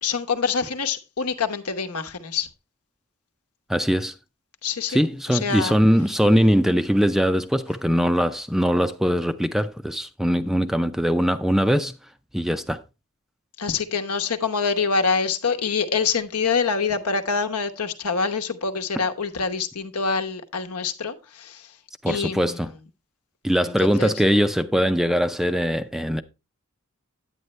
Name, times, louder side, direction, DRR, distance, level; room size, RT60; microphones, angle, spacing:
voice 1, 0.0-2.5 4.6-5.0 5.3-5.7 13.6-21.7 22.1-22.6 23.6-24.1, left 5 dB, 85° left, 1.0 m, -25 dB
voice 2, 3.7-4.1 4.9-11.9 12.3-12.8 22.0-22.7 23.4-26.2, equal, ahead, 0.4 m, -21 dB
9.3 x 8.8 x 3.1 m
head